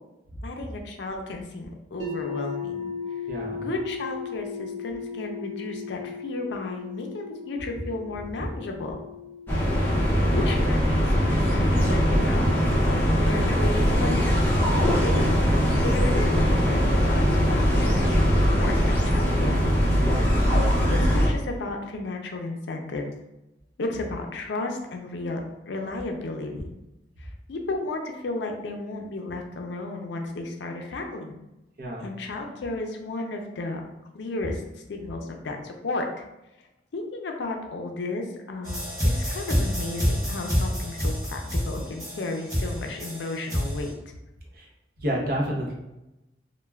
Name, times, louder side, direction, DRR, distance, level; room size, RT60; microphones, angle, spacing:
voice 1, 0.4-2.9 3.6-9.0 10.3-12.5 12.8-14.1 14.7-15.2 15.8-19.6 20.1-23.0 23.8-25.4 25.7-26.7 27.2-31.4 32.0-33.8 34.1-34.6 34.9-36.1 36.9-38.8 39.1-44.2, left 2 dB, 75° left, 3 dB, 0.4 m, -33 dB
sound 1, 2.0-13.9, left 5 dB, 90° right, 0.8 m, -38 dB
voice 2, 3.3-3.7 15.7-15.8 20.0-20.4 31.8-32.1 44.6-44.7 45.0-45.7, equal, 50° right, -2 dB, 0.6 m, -30 dB
sound 2, 9.5-21.3, equal, 10° left, 0.5 m, -21 dB
sound 3, 38.6-43.9, equal, 15° right, 0.8 m, -27 dB
2.3 x 2.1 x 3.2 m, 0.94 s
head